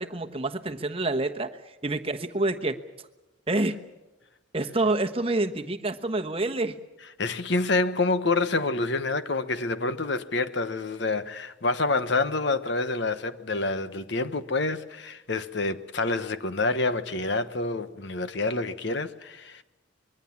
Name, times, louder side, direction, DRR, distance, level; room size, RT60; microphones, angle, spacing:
voice 1, 0.0-2.8 3.5-3.8 4.5-6.8, right 2 dB, 30° right, 1.2 m, -27 dB
voice 2, 7.2-19.6, left 3 dB, 55° left, 1.1 m, -27 dB
24.0 x 22.5 x 7.3 m
head